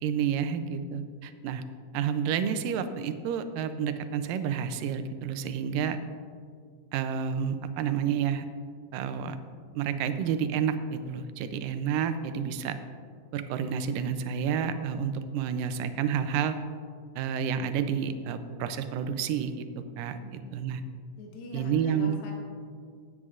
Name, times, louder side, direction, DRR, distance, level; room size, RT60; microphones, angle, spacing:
voice 1, 0.0-1.6 1.9-6.0 6.9-8.5 8.9-9.4 9.8-12.8 13.3-16.6 17.2-19.7 20.0-20.2 20.5-20.8 21.5-22.1, right 7 dB, 80° right, 10 dB, 2.2 m, -30 dB
voice 2, 20.2-20.8 21.2-22.3, left 2 dB, 90° left, -1 dB, 2.9 m, -43 dB
16.0 x 9.1 x 2.5 m, 2.1 s
omnidirectional pair, 4.0 m